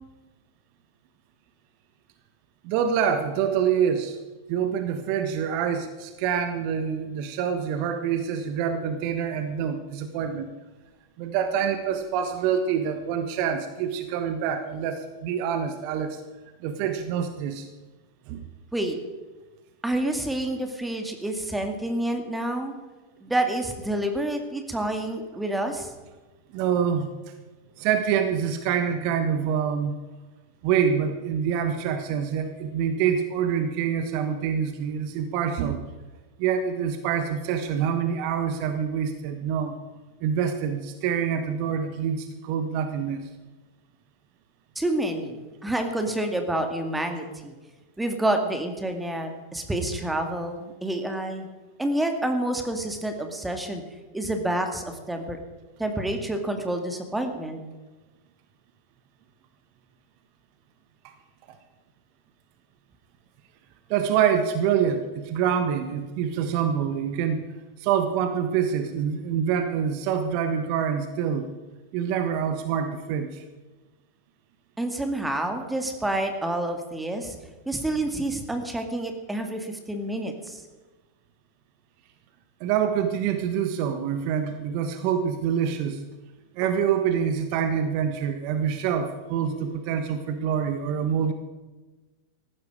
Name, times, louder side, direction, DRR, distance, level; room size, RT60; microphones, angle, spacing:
voice 1, 2.6-4.2 4.5-10.5 11.2-16.2 16.6-17.7 18.3-18.4 26.5-27.1 27.8-30.0 30.6-35.8 36.4-39.7 40.2-43.2 63.9-67.4 67.8-71.5 71.9-73.4 82.6-86.0 86.6-91.3, right 8 dB, 45° right, 8 dB, 1.4 m, -26 dB
voice 2, 19.8-22.7 23.2-25.9 44.8-47.5 48.0-51.5 51.8-53.8 54.1-55.4 55.8-57.6 74.8-77.4 77.7-80.6, right 1 dB, 5° right, 5 dB, 2.3 m, -28 dB
18.5 x 15.0 x 4.9 m, 1.2 s
figure-of-eight pair, 90°, 0 cm